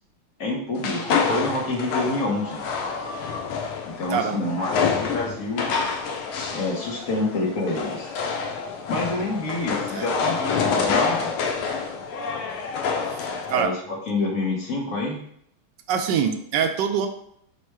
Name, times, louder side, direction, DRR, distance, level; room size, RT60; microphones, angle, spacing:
voice 1, 0.4-2.6 3.9-5.7 6.5-8.1 8.9-11.4 13.5-15.2, left 2 dB, 55° left, -1 dB, 1.0 m, -27 dB
sound 1, 0.8-13.6, left 5 dB, 85° left, 1.5 m, -27 dB
voice 2, 4.1-4.5 9.9-10.1 13.5-13.7 15.9-17.1, right 7 dB, 75° right, 6 dB, 1.0 m, -24 dB
4.5 x 2.1 x 4.6 m, 0.70 s
omnidirectional pair, 2.3 m